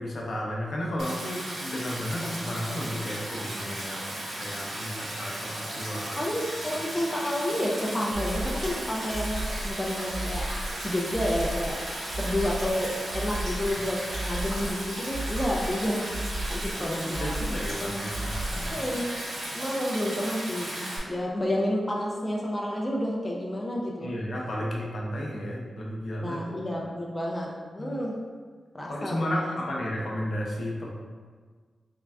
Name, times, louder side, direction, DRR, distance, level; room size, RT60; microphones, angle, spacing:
voice 1, 0.0-4.1 4.4-6.2 6.7-6.8 16.8-18.8 24.0-26.4 27.8-28.0 28.9-30.9, equal, 60° left, -2 dB, 0.6 m, -33 dB
Stream, 1.0-21.0, right 1 dB, 85° right, 0.9 m, -35 dB
voice 2, 6.2-10.5 10.8-11.8 12.2-16.1 16.5-18.1 18.7-19.1 19.5-24.1 26.2-27.5 27.7-28.2 28.7-29.6, left 1 dB, 15° left, -3 dB, 0.5 m, -30 dB
sound 1, 8.1-8.7 9.1-9.7 10.1-10.7 11.1-11.7 12.1-12.7 13.1-13.7 14.1-14.7 15.1-15.7 16.1-16.7 17.1-17.7 18.1-18.8, right 1 dB, 40° right, 0.5 m, -33 dB
3.7 x 3.3 x 2.3 m, 1.5 s
wide cardioid pair, 115°, 0 cm